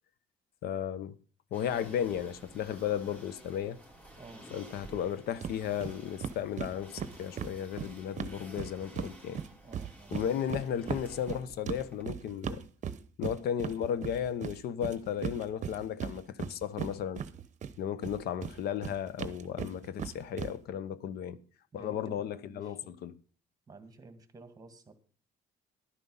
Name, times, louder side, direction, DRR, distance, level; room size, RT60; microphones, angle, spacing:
voice 1, 0.6-1.2 1.5-3.8 4.5-9.4 10.1-12.6 13.2-17.2 17.8-21.4 21.7-23.2, left 9 dB, 70° left, 0.9 m, -34 dB
sound 1, 1.5-12.0, right 1 dB, 10° left, 3.0 m, -52 dB
voice 2, 4.2-4.5 9.6-10.2 21.7-23.0 23.7-24.9, right 3 dB, 20° right, 1.9 m, -52 dB
sound 2, 5.4-5.6 5.8-5.9 6.2-9.1 9.4-17.7 18.0-20.5, right 8 dB, 45° right, 0.9 m, -37 dB
11.5 x 9.7 x 5.5 m
cardioid pair, 110°, 17 cm